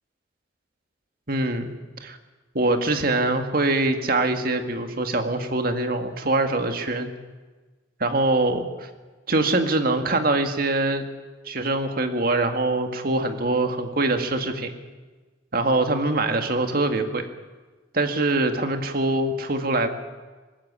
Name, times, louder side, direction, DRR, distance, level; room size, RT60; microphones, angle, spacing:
voice 1, 1.3-2.2 2.5-7.1 8.0-8.9 9.3-11.0 11.5-14.7 15.5-17.3 17.9-19.9, right 2 dB, 50° right, 6 dB, 2.0 m, -23 dB
20.5 x 16.0 x 10.0 m, 1.3 s
head